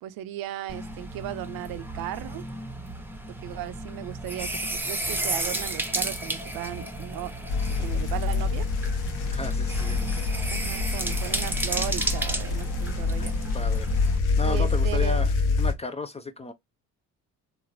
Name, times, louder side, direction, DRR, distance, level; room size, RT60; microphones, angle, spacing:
voice 1, 0.0-2.5 3.4-8.7 10.5-13.4 14.4-15.5, right 14 dB, 65° right, 0.5 m, -36 dB
sound 1, 0.7-14.2, right 1 dB, 5° right, 0.8 m, -33 dB
sound 2, 7.5-15.7, left 4 dB, 75° left, 0.8 m, -26 dB
voice 2, 9.3-10.0 13.2-13.9 14.4-15.3 15.6-16.5, left 3 dB, 15° left, 0.4 m, -34 dB
3.0 x 2.4 x 2.5 m
hypercardioid pair, 55°, 39 cm